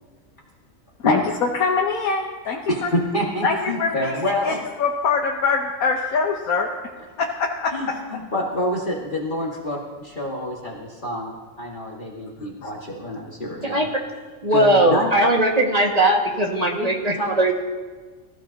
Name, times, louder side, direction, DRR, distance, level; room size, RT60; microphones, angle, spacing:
voice 1, 1.0-2.9 3.4-4.2 4.4-6.7 7.2-8.0 12.6-12.7, left 5 dB, 80° left, 1 dB, 1.5 m, -23 dB
voice 2, 2.7-4.6 7.7-11.3 11.6-13.9 14.5-15.1 16.7-16.9 17.2-17.4, left 1 dB, 35° left, -3 dB, 2.0 m, -27 dB
voice 3, 14.4-17.5, right 1 dB, 25° right, -1 dB, 1.9 m, -19 dB
24.5 x 15.0 x 2.9 m, 1.4 s
omnidirectional pair, 1.5 m